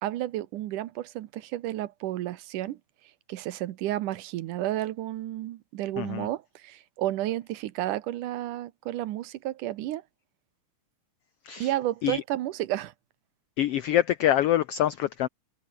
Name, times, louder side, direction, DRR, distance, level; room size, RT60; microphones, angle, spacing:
voice 1, 0.0-2.8 3.3-10.0 11.6-12.9, right 14 dB, 80° right, 2.5 m, -31 dB
voice 2, 6.0-6.3 11.4-11.7 12.0-12.2 13.6-15.3, left 12 dB, 85° left, 1.3 m, -25 dB
omnidirectional pair, 3.7 m